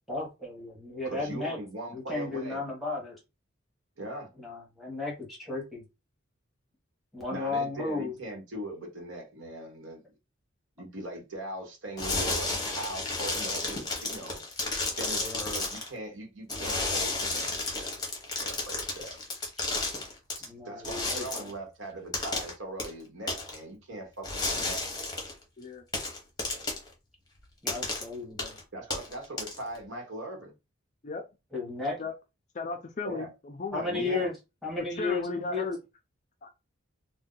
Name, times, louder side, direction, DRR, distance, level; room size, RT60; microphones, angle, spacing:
voice 1, 0.1-1.6 1.9-3.2 4.4-5.8 7.1-8.1 15.2-15.4 20.4-21.5 27.6-28.6 31.5-32.0 33.7-34.3 34.6-35.6, left 3 dB, ahead, 1.2 m, -34 dB
voice 2, 1.0-2.6 4.0-4.3 7.3-10.0 10.8-14.4 15.0-17.9 18.4-19.2 20.3-24.8 28.7-30.5 33.0-33.3 33.7-34.3, right 1 dB, 65° right, 1.2 m, -40 dB
sound 1, 12.0-15.9 16.5-20.4 20.8-21.5 22.1-22.5 22.8-22.9 23.3-23.6 24.2-25.3 25.9-26.9 27.7-28.0 28.4-28.6 28.9-29.8, left 3 dB, 20° left, 0.8 m, -32 dB
voice 3, 32.5-34.3 35.0-35.8 36.4-36.5, left 3 dB, 35° left, 0.4 m, -35 dB
2.7 x 2.2 x 3.7 m
head